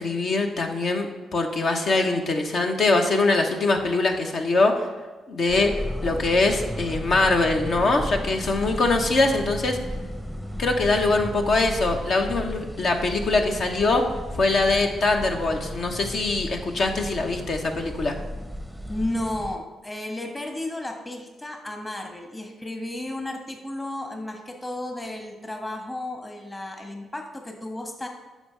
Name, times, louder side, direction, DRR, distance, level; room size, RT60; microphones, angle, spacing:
voice 1, 0.0-4.9 5.3-5.7 6.0-9.8 10.6-14.0 14.3-18.1, left 3 dB, 60° left, 3 dB, 1.1 m, -23 dB
sound 1, 5.5-19.6, equal, 5° left, 0.8 m, -34 dB
voice 2, 18.9-28.1, left 1 dB, 25° left, 3 dB, 1.5 m, -33 dB
9.7 x 6.3 x 3.4 m, 1.3 s
hypercardioid pair, 40°, 0 cm